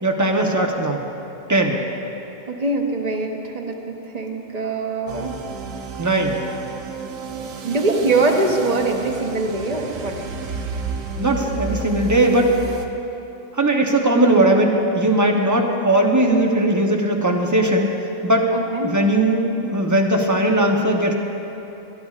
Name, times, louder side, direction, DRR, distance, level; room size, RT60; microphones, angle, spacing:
voice 1, 0.0-1.1 1.5-1.8 6.0-6.4 11.2-12.6 13.5-17.9 18.2-18.5 18.8-21.1, right 1 dB, 15° right, 1 dB, 0.7 m, -18 dB
voice 2, 2.5-5.4 7.6-10.2 18.5-18.9, right 3 dB, 35° right, 1 dB, 1.0 m, -23 dB
sound 1, 5.1-12.9, right 5 dB, 85° right, 1.2 m, -31 dB
20.0 x 12.0 x 2.4 m, 3.0 s
omnidirectional pair, 1.4 m